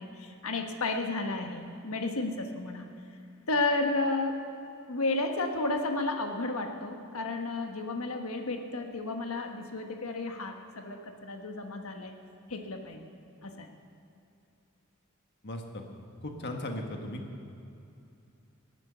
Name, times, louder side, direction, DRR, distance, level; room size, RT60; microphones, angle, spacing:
voice 1, 0.0-2.9 3.5-4.4 4.9-12.1 12.5-13.0 13.4-13.7, left 2 dB, 80° left, 5 dB, 1.4 m, -32 dB
voice 2, 15.4-15.8 16.2-17.2, left 1 dB, 55° left, 3 dB, 1.5 m, -37 dB
18.0 x 9.2 x 6.9 m, 2.7 s
head